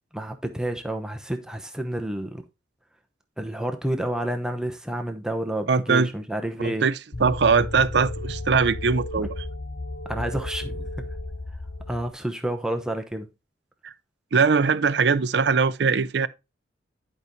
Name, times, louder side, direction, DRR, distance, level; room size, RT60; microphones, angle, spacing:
voice 1, 0.1-2.4 3.4-6.9 9.2-9.3 10.1-10.9 11.9-13.3, right 1 dB, 5° right, 0.9 m, -29 dB
voice 2, 5.7-6.1 6.6-9.3 13.8-13.9 14.3-16.3, right 5 dB, 60° right, 0.5 m, -21 dB
sound 1, 7.1-12.1, left 2 dB, 40° left, 0.9 m, -34 dB
11.0 x 5.3 x 3.1 m
head